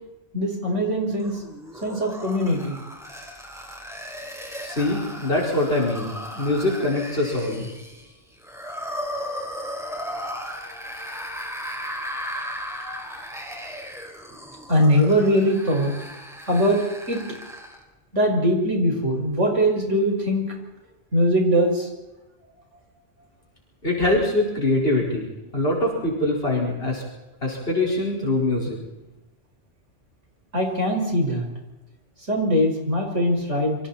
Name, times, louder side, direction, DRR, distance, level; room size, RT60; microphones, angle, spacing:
voice 1, 0.3-1.4 1.8-2.8 12.8-13.2 14.7-15.9 16.5-17.2 18.1-20.5 21.1-21.9 30.5-31.5 32.3-33.8, equal, 85° right, 0 dB, 5.9 m, -21 dB
sound 1, 1.2-17.8, equal, ahead, 4.8 m, -36 dB
voice 2, 4.6-7.7 23.8-25.3 25.5-27.0 27.4-28.8, left 2 dB, 55° left, -2 dB, 5.1 m, -23 dB
28.0 x 25.0 x 4.3 m, 1.0 s
omnidirectional pair, 1.2 m